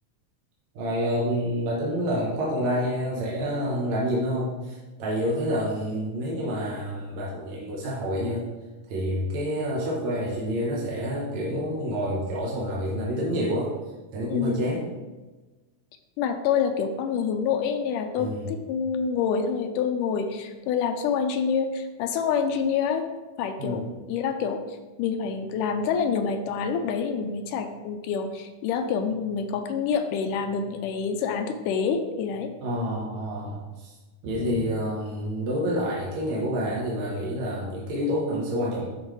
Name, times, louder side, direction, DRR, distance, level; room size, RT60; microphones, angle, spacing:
voice 1, 0.8-8.4 8.9-13.7 14.1-14.9 18.2-18.5 23.6-23.8 32.6-33.9 34.2-38.9, equal, 65° right, -5 dB, 2.3 m, -28 dB
voice 2, 14.3-14.7 16.2-23.1 23.4-24.6 25.0-32.5 34.4-34.7, left 6 dB, 90° left, 6 dB, 2.2 m, -27 dB
11.0 x 4.4 x 3.2 m, 1.2 s
omnidirectional pair, 3.7 m